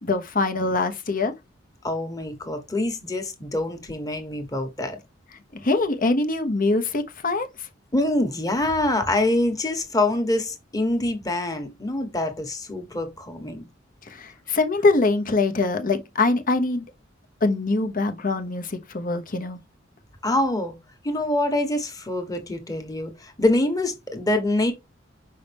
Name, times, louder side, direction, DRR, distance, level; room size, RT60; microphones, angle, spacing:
voice 1, 0.0-1.3 5.5-7.7 14.1-16.8 17.4-19.6, left 3 dB, 45° left, 1.0 m, -23 dB
voice 2, 1.8-5.0 7.9-13.6 20.2-20.7 21.0-24.7, left 1 dB, 20° left, 1.3 m, -25 dB
5.6 x 5.4 x 3.5 m
head